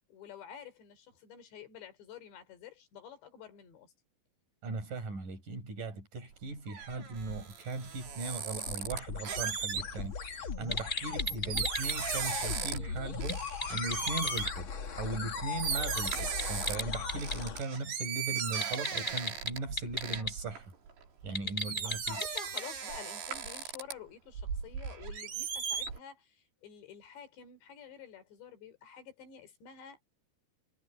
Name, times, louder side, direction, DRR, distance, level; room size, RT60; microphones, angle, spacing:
voice 1, 0.1-3.9 21.8-30.0, left 8 dB, 70° left, 5.8 m, -49 dB
voice 2, 4.6-20.7 21.2-22.2, right 3 dB, 45° right, 8.0 m, -39 dB
sound 1, 6.3-10.3 10.8-12.9 13.2-14.6 15.2-15.3 15.6-16.8 17.2-21.3 21.6-23.9 24.3-26.0, right 7 dB, 75° right, 6.7 m, -37 dB
sound 2, 7.8-17.6, left 5 dB, 55° left, 1.4 m, -39 dB
sound 3, 10.6-11.9 13.2-14.5 15.7-17.4 18.6-20.3 21.2-22.6, left 2 dB, 15° left, 2.6 m, -35 dB
omnidirectional pair, 5.3 m